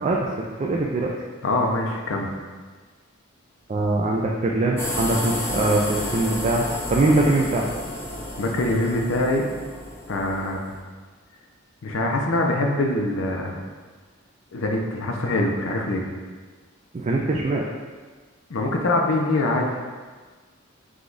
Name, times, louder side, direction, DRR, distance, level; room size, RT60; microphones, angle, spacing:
voice 1, 0.0-1.1 3.7-7.7 16.9-17.7, right 2 dB, 35° right, -2 dB, 0.3 m, -22 dB
voice 2, 1.4-2.3 8.4-9.5 10.1-10.6 11.8-13.6 14.5-16.1 18.5-19.8, left 2 dB, 65° left, 1 dB, 0.6 m, -24 dB
sound 1, 4.8-10.8, left 1 dB, 10° left, 0.6 m, -31 dB
4.9 x 2.3 x 3.9 m, 1.4 s
head